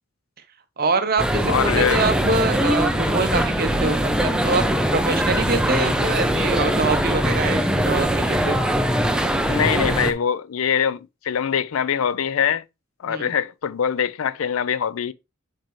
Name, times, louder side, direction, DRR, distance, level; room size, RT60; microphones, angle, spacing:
voice 1, 0.8-4.6 4.9-8.6 13.1-13.3, right 3 dB, 45° right, 0.8 m, -24 dB
sound 1, 1.2-10.1, equal, 5° right, 0.5 m, -21 dB
voice 2, 1.5-2.0 9.5-12.6 13.0-15.1, left 7 dB, 80° left, 0.4 m, -23 dB
7.5 x 4.5 x 3.1 m
head